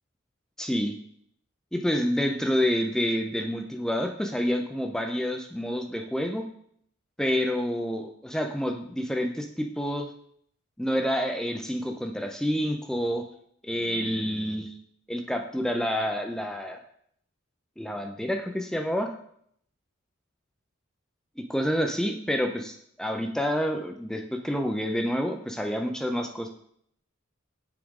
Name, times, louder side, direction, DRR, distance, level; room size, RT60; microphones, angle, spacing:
voice 1, 0.6-1.0 1.7-6.4 7.2-10.1 10.8-13.2 13.6-14.7 15.1-16.8 17.8-19.1 21.4-26.5, equal, 5° left, 4 dB, 0.5 m, -28 dB
7.7 x 5.0 x 3.7 m, 0.67 s
head